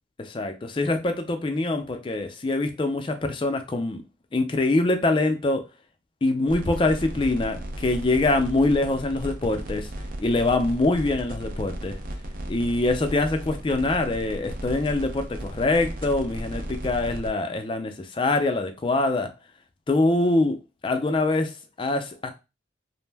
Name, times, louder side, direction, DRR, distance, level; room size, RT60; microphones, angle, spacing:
voice 1, 0.2-4.0 4.3-5.6 6.2-9.9 10.2-12.0 12.5-19.3 19.9-20.6 20.8-22.3, left 2 dB, 25° left, 0.3 m, -24 dB
sound 1, 6.5-17.3, equal, 45° right, 0.5 m, -35 dB
2.5 x 2.1 x 3.3 m
head